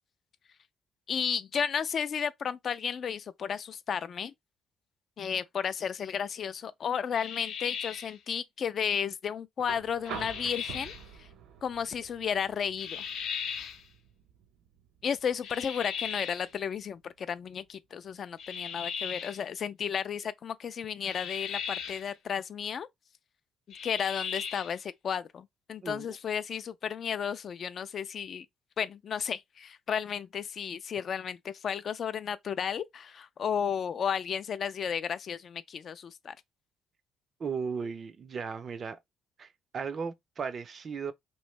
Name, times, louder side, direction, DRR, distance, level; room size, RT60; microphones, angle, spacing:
voice 1, 1.1-4.3 5.2-10.9 11.2-11.3 11.6-13.0 15.0-22.9 23.8-28.5 28.8-36.4, left 7 dB, 45° left, 0.3 m, -33 dB
sound 1, 7.1-8.2 10.0-11.0 12.8-13.8 15.4-16.5 18.4-19.4 21.0-22.1 23.7-24.8, left 7 dB, 70° left, 0.7 m, -37 dB
sound 2, 9.6-17.6 19.0-19.1, right 7 dB, 80° right, 0.7 m, -48 dB
voice 2, 37.4-39.0 39.4-41.1, right 5 dB, 40° right, 0.4 m, -36 dB
3.0 x 2.6 x 3.1 m
cardioid pair, 140°, 0 cm